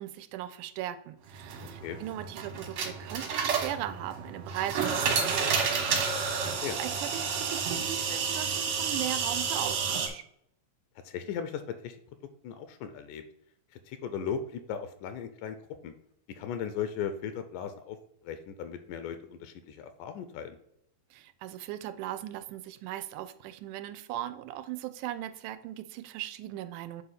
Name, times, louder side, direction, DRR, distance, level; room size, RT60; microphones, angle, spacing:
voice 1, 0.0-10.2 21.1-27.0, right 13 dB, 90° right, 11 dB, 2.1 m, -38 dB
sound 1, 1.3-10.1, right 6 dB, 65° right, 2.1 m, -30 dB
voice 2, 11.0-12.0 12.4-13.2 13.7-15.6 15.8-15.9 16.4-18.0 18.2-20.6, left 7 dB, 85° left, 9 dB, 2.1 m, -37 dB
7.9 x 2.8 x 5.5 m, 0.74 s
omnidirectional pair, 3.5 m